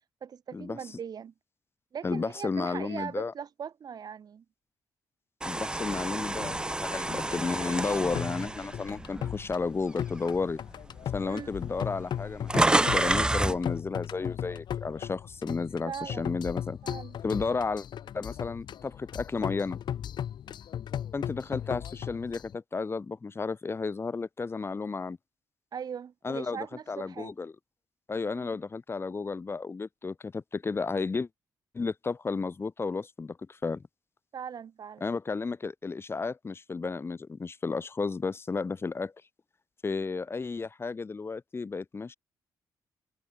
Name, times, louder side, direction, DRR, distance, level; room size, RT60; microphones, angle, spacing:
voice 1, 0.2-1.3 1.9-4.4 11.2-11.5 15.9-16.3 16.8-17.2 25.7-27.3 28.3-28.6 34.3-35.1, right 7 dB, 55° right, 2.8 m, -40 dB
voice 2, 2.0-3.3 5.4-10.6 11.0-16.8 17.2-17.9 18.1-19.8 21.1-25.2 26.2-27.5 28.1-31.3 31.7-33.8 35.0-39.1 39.8-42.1, left 4 dB, 30° left, 1.7 m, -33 dB
sound 1, 5.4-9.7 10.2-10.4 11.3-11.4 11.6-13.6, right 1 dB, 10° right, 0.8 m, -29 dB
sound 2, 6.2-22.5, left 9 dB, 70° left, 2.1 m, -37 dB
cardioid pair, 90°, 8 cm